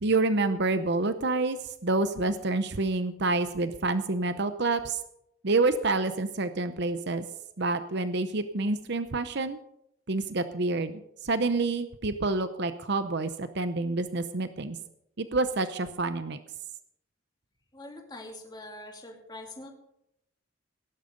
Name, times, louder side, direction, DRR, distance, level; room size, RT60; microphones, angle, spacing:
voice 1, 0.0-5.0 5.4-7.2 7.6-9.6 10.1-14.8 15.2-16.4, right 3 dB, 55° right, 10 dB, 0.8 m, -28 dB
voice 2, 17.7-19.7, left 1 dB, 20° left, 1 dB, 2.8 m, -44 dB
18.0 x 10.5 x 5.2 m, 0.78 s
head